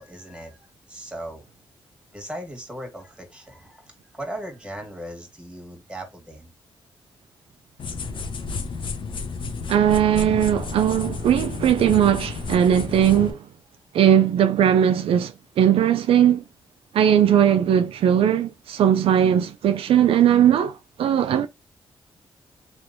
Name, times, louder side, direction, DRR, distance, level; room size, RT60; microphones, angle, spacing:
voice 1, 0.0-1.4 2.1-6.5 13.8-13.9, right 1 dB, 10° right, 1.8 m, -38 dB
sound 1, 7.8-13.3, left 4 dB, 60° left, 0.7 m, -32 dB
voice 2, 9.7-13.4 13.9-16.4 16.9-21.5, right 9 dB, 75° right, 0.4 m, -19 dB
3.2 x 2.9 x 2.6 m
cardioid pair, 65°, 10 cm